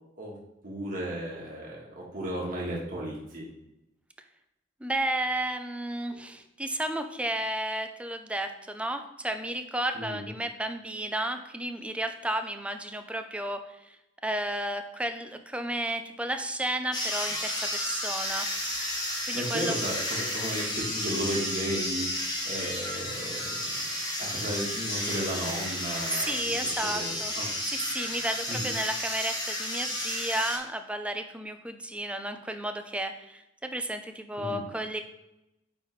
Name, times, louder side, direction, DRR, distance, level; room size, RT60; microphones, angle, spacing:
voice 1, 0.6-3.4 9.9-10.3 19.3-22.1 22.4-23.9 24.2-26.3 26.8-27.5 28.5-28.7 34.4-34.6, equal, 45° right, -4 dB, 1.3 m, -34 dB
voice 2, 4.8-18.5 19.3-19.7 26.1-27.3 27.6-35.0, right 1 dB, 5° right, 7 dB, 0.4 m, -33 dB
sound 1, 16.9-30.6, left 1 dB, 20° left, 1.1 m, -32 dB
9.1 x 3.3 x 3.1 m, 0.89 s
head